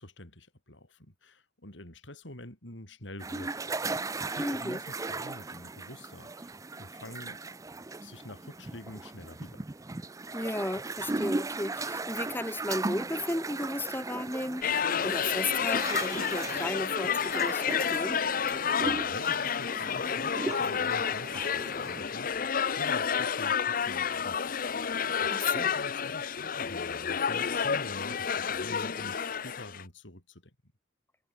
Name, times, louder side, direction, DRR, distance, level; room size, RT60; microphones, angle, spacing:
voice 1, 0.0-3.8 4.3-7.5 8.0-9.7 18.4-24.7 25.2-30.5, left 1 dB, 80° left, 7.4 m, -46 dB
sound 1, 3.2-22.0, right 3 dB, 20° right, 0.5 m, -37 dB
voice 2, 4.4-4.8 10.3-18.2 25.3-25.7, left 1 dB, 10° left, 2.3 m, -34 dB
sound 2, 14.6-29.8, left 7 dB, 50° left, 0.7 m, -30 dB
head